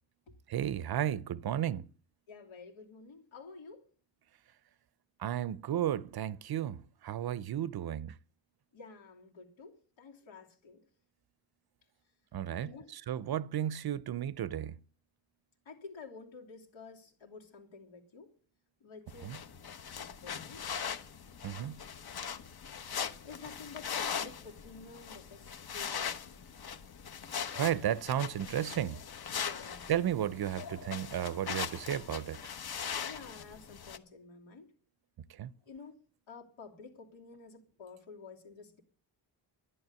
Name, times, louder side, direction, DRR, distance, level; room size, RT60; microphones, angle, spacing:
voice 1, 0.5-1.9 5.2-8.1 12.3-14.8 19.2-19.4 21.4-21.8 27.6-29.1 29.9-32.4 35.3-35.5, right 10 dB, 55° right, 0.6 m, -33 dB
voice 2, 2.3-3.8 8.7-10.8 12.6-13.0 15.6-18.3 18.8-19.5 20.0-20.6 23.2-26.4 27.8-27.9 29.3-29.9 33.0-34.7 35.7-35.9 36.3-38.8, left 4 dB, 85° left, 3.1 m, -51 dB
sound 1, 19.1-34.0, left 7 dB, 55° left, 1.2 m, -40 dB
11.0 x 11.0 x 6.8 m
cardioid pair, 105°, 46 cm